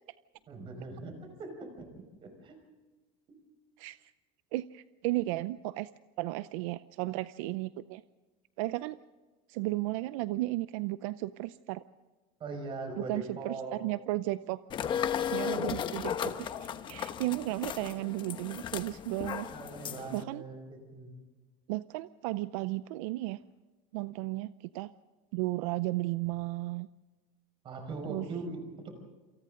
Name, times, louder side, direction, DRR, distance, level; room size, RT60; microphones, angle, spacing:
voice 1, 0.5-1.9 2.2-2.6 12.4-13.8 19.5-21.1 27.6-28.9, right 3 dB, 30° right, 5 dB, 5.5 m, -41 dB
voice 2, 4.5-5.9 6.2-8.0 8.6-9.0 9.5-11.8 13.0-14.6 15.3-19.5 20.1-20.4 21.7-23.4 23.9-24.9 25.3-26.9 28.1-28.3, right 18 dB, 70° right, 14 dB, 0.6 m, -34 dB
sound 1, 14.7-20.2, left 9 dB, 25° left, 1.1 m, -35 dB
28.5 x 27.5 x 3.8 m, 1.3 s
cardioid pair, 165°, 18 cm